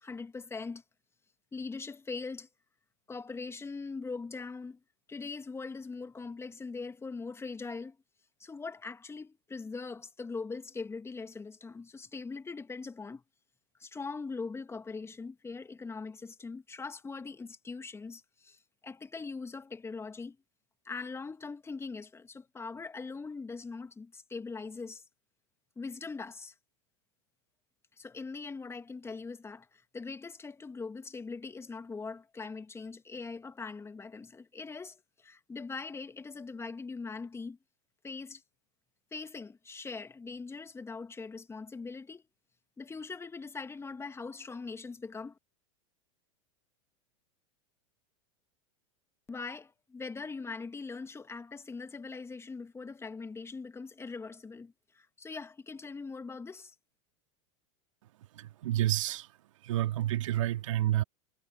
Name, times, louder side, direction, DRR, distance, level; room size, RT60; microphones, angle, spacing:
voice 1, 0.0-0.8 1.5-2.5 3.1-4.8 5.1-8.0 8.4-13.2 13.8-20.4 20.8-25.0 25.8-26.5 28.0-37.6 38.0-38.4 39.1-42.2 42.8-45.4 49.3-56.7, left 4 dB, 15° left, 2.4 m, -41 dB
voice 2, 58.3-59.3 59.6-61.0, right 13 dB, 70° right, 2.3 m, -29 dB
hypercardioid pair, 95°, 17 cm